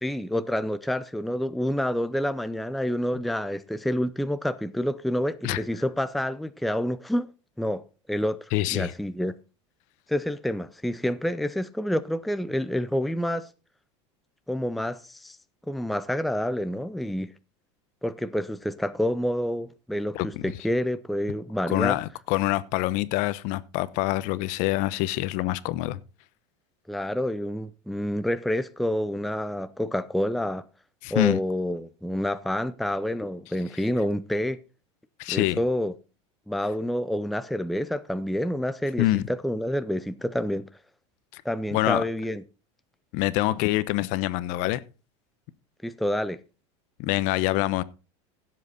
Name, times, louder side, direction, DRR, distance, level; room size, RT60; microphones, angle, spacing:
voice 1, 0.0-7.3 7.6-9.3 10.1-13.5 14.5-15.4 15.7-17.3 18.0-22.0 26.9-30.7 31.1-34.6 35.3-35.9 36.5-40.7 41.4-42.4 45.8-46.4, equal, ahead, 0.5 m, -28 dB
voice 2, 8.5-8.9 20.1-20.5 21.7-26.0 31.0-31.4 35.2-35.6 39.0-39.2 41.3-41.4 41.7-42.0 43.1-44.8 47.0-47.8, left 17 dB, 55° left, 0.9 m, -25 dB
16.0 x 7.6 x 4.1 m
supercardioid pair, 140°, 15 cm